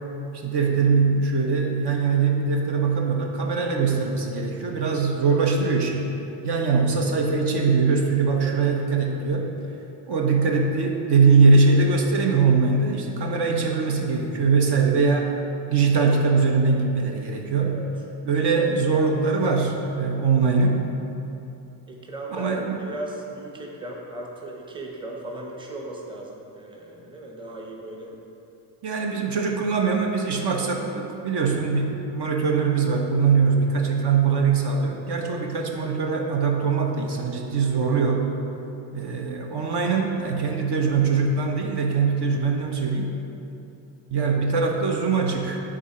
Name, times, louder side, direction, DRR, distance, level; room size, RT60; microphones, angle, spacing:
voice 1, 0.3-6.0 6.4-9.5 10.1-15.4 15.7-17.8 18.2-20.8 22.3-22.8 28.8-38.3 38.9-43.1 44.1-45.6, right 4 dB, 55° right, 1 dB, 0.9 m, -22 dB
voice 2, 21.9-28.1, right 1 dB, 10° right, -1 dB, 0.8 m, -36 dB
8.6 x 3.8 x 4.4 m, 2.9 s
cardioid pair, 105°, 47 cm